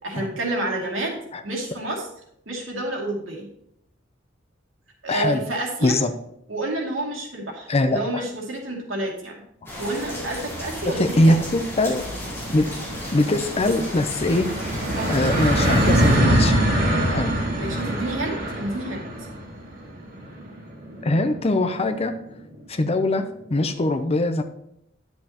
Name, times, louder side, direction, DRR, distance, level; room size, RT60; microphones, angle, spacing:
voice 1, 0.0-2.1 2.5-3.5 5.0-6.0 6.5-9.4 9.8-11.3 14.9-15.2 17.6-19.1, right 1 dB, 75° right, -1 dB, 2.4 m, -29 dB
voice 2, 5.1-5.4 5.8-6.1 7.7-8.2 10.9-12.1 12.5-12.8 13.1-14.5 15.1-16.5 17.1-17.4 21.0-22.2 22.7-24.4, left 2 dB, 30° left, 8 dB, 0.6 m, -22 dB
sound 1, 9.7-16.2, left 1 dB, 15° left, 2.7 m, -34 dB
sound 2, 10.6-10.7 11.0-22.4, right 1 dB, 45° right, 2.4 m, -24 dB
10.0 x 7.6 x 2.9 m, 0.75 s
head